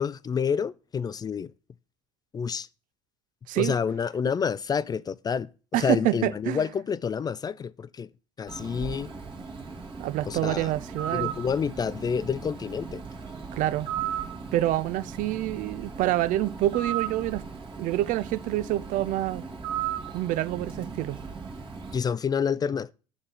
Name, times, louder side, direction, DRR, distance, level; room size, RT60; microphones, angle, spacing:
voice 1, 0.0-1.5 2.3-2.7 3.6-8.1 8.4-9.1 10.3-10.7 11.1-13.0 21.9-22.9, left 6 dB, 25° left, 0.3 m, -28 dB
voice 2, 5.7-6.6 10.0-11.3 13.5-13.9 14.5-17.4 17.8-19.4 20.1-21.2, right 14 dB, 55° right, 0.5 m, -27 dB
Bird, 8.5-22.0, right 7 dB, 30° right, 1.9 m, -37 dB
6.1 x 4.4 x 5.7 m
hypercardioid pair, 65°, 16 cm